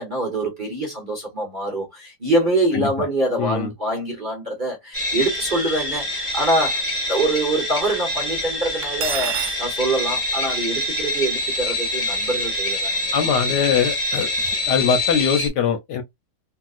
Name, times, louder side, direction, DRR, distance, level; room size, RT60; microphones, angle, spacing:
voice 1, 0.0-13.1, right 1 dB, 35° right, 0.9 m, -25 dB
voice 2, 3.4-3.7 13.1-14.3 14.7-16.0, left 6 dB, 70° left, 1.1 m, -21 dB
sound 1, 4.9-15.5, left 1 dB, 20° left, 1.0 m, -25 dB
Cutlery silverware, 8.8-9.6, right 8 dB, 80° right, 0.6 m, -26 dB
2.9 x 2.8 x 2.4 m
omnidirectional pair, 2.1 m